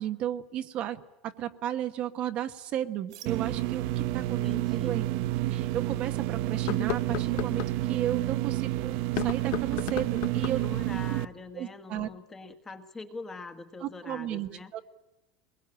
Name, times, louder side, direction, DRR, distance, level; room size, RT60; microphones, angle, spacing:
voice 1, 0.0-5.0 5.5-10.6 11.1-11.2 11.6-12.1 13.8-14.8, right 11 dB, 40° right, 7 dB, 1.2 m, -34 dB
unsheathe sword anime like, 3.1-8.6, right 7 dB, 90° right, 4.8 m, -58 dB
Blacklight Buzz, 3.3-11.3, right 15 dB, 60° right, 0.9 m, -29 dB
voice 2, 4.3-5.0 10.5-14.7, left 3 dB, 15° left, 7 dB, 1.6 m, -43 dB
sound 1, 4.6-4.7 5.2-5.3 6.5-7.7 9.0-10.7, left 15 dB, 55° left, 0.9 m, -35 dB
23.0 x 21.5 x 8.9 m, 0.98 s
cardioid pair, 165°, 3 cm